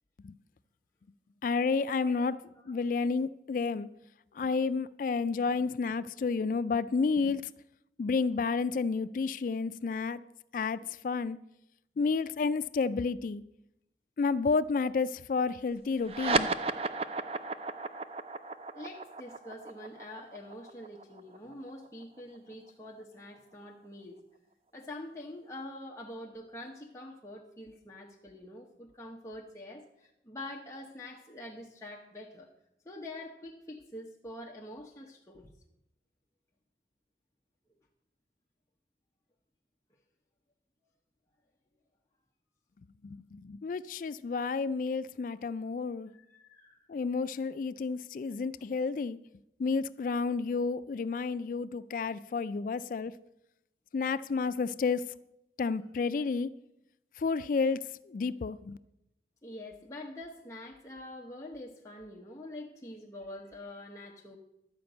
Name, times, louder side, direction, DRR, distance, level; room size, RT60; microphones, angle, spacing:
voice 1, 1.4-2.4 2.7-3.9 4.3-7.5 8.0-10.2 10.5-11.4 12.0-13.4 14.2-16.5 43.0-46.1 46.9-49.2 49.6-53.1 53.9-55.1 55.6-56.5 57.2-58.8, left 4 dB, 50° left, 0.3 m, -31 dB
voice 2, 2.0-2.8 18.7-24.2 24.7-32.5 32.8-35.5 46.1-46.9 59.4-64.4, left 1 dB, 15° left, 0.9 m, -45 dB
sound 1, 16.0-22.9, right 3 dB, 35° right, 0.4 m, -34 dB
12.0 x 5.2 x 7.8 m
head